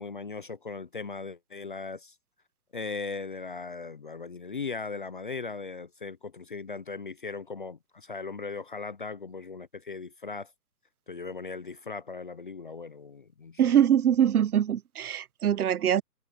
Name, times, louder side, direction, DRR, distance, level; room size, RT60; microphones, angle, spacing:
voice 1, 0.0-2.2 2.7-10.5 11.1-13.8, left 4 dB, 35° left, 0.5 m, -38 dB
voice 2, 13.6-16.0, right 9 dB, 65° right, 1.0 m, -23 dB
hypercardioid pair, 165°, 49 cm